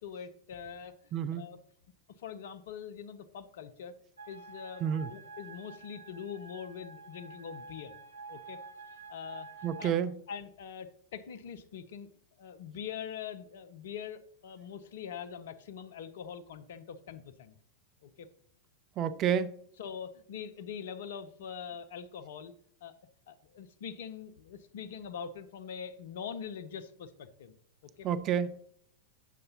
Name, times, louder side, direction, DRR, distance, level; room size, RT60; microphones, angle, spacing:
voice 1, 0.0-1.6 2.2-3.9 4.3-7.9 8.3-8.6 9.1-9.5 9.8-9.9 10.3-12.1 12.4-17.6 18.0-18.3 19.8-22.5 22.8-22.9 23.3-27.5 28.0-28.1, left 7 dB, 60° left, 0.6 m, -43 dB
voice 2, 1.1-1.4 4.8-5.1 9.6-10.1 19.0-19.5 28.0-28.6, right 8 dB, 35° right, 0.4 m, -29 dB
sound 1, 4.2-9.8, right 3 dB, 85° right, 0.7 m, -49 dB
8.2 x 6.5 x 2.8 m
figure-of-eight pair, 90°, 0 cm